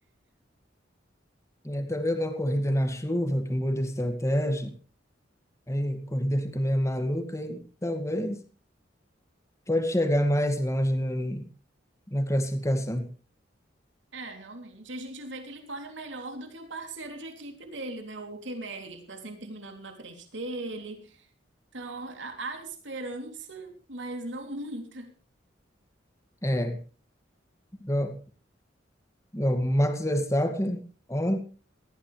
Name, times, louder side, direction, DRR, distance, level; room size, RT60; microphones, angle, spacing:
voice 1, 1.6-4.7 5.7-8.4 9.7-11.5 12.1-13.1 26.4-26.8 27.8-28.2 29.3-30.8 31.1-31.4, equal, 15° left, 7 dB, 2.3 m, -27 dB
voice 2, 14.1-21.3 21.7-25.1, right 2 dB, 75° right, 5 dB, 3.4 m, -39 dB
19.0 x 15.0 x 3.4 m, 0.36 s
head